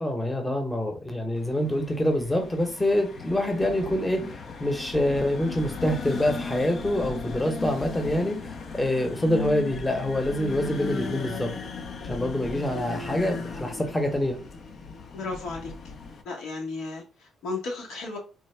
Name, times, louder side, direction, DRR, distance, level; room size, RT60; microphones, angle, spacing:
voice 1, 0.0-11.5 12.0-14.4, left 1 dB, 10° left, 0.8 m, -26 dB
sound 1, 1.3-16.2, left 4 dB, 60° left, 0.5 m, -36 dB
voice 2, 15.1-15.9 16.2-18.2, left 3 dB, 85° left, 1.0 m, -34 dB
3.4 x 2.0 x 3.2 m
cardioid pair, 90°, 0 cm